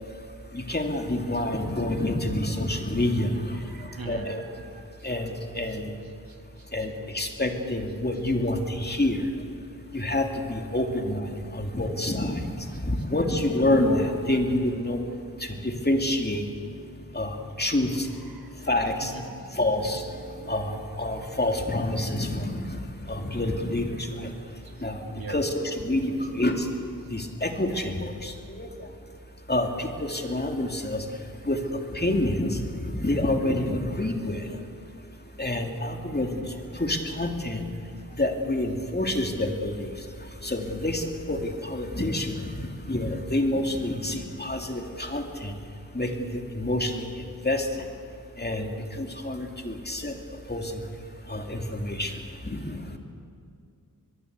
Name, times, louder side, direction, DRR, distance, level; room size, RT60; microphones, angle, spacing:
voice 1, 0.5-3.3 4.1-4.4 5.0-5.9 6.7-9.2 9.9-11.2 11.5-12.4 12.8-15.0 15.4-16.4 17.1-18.1 18.7-19.1 19.6-20.0 20.5-22.6 23.1-24.3 24.8-25.0 25.3-26.7 27.1-28.7 29.5-31.0 31.5-31.6 31.9-32.6 33.0-34.4 35.4-36.4 36.8-37.6 38.2-39.9 40.4-42.4 42.9-45.5 45.9-47.1 47.4-47.7 48.4-48.7 49.0-50.1 50.5-50.7 51.3-52.1 52.5-53.0, left 1 dB, 30° left, 3 dB, 2.8 m, -27 dB
voice 2, 3.7-4.8 18.3-18.5 19.0-19.2 25.1-25.4, right 3 dB, 85° right, 4 dB, 2.3 m, -40 dB
sound 1, 15.5-22.7, right 2 dB, 40° right, 3.8 m, -48 dB
22.5 x 22.0 x 8.2 m, 2.3 s
wide cardioid pair, 70°, 35 cm